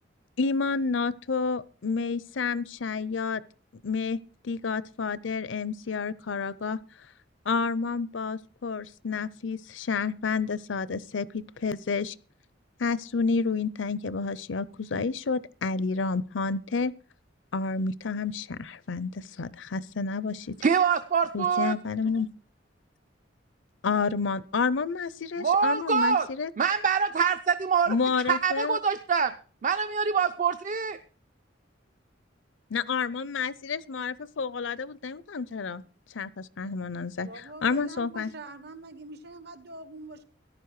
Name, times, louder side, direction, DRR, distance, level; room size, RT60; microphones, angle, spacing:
voice 1, 0.4-3.4 3.8-6.8 7.5-12.1 12.8-16.9 17.5-20.6 21.3-22.3 23.8-26.5 27.9-28.8 32.7-35.8 36.1-37.3 37.6-38.3, left 4 dB, 75° left, 19 dB, 0.6 m, -30 dB
voice 2, 20.6-21.7 25.4-26.3 26.6-28.0 28.2-29.3 29.6-31.0, right 6 dB, 45° right, 10 dB, 0.6 m, -25 dB
voice 3, 37.2-40.2, right 2 dB, 60° right, 12 dB, 1.3 m, -44 dB
14.0 x 11.0 x 4.8 m, 0.40 s
head